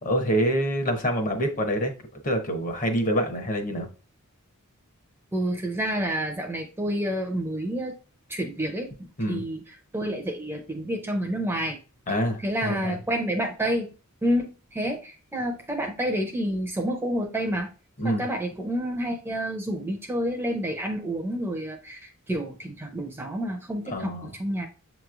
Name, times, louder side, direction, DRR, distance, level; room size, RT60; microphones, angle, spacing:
voice 1, 0.0-3.9 9.2-9.4 12.1-13.0 18.0-18.2 23.9-24.3, equal, 35° left, 5 dB, 0.9 m, -26 dB
voice 2, 5.3-7.9 8.3-11.8 12.1-13.9 14.2-17.7 18.0-24.1 24.4-24.7, equal, 10° right, 3 dB, 0.5 m, -29 dB
7.3 x 3.0 x 2.4 m, 0.34 s
head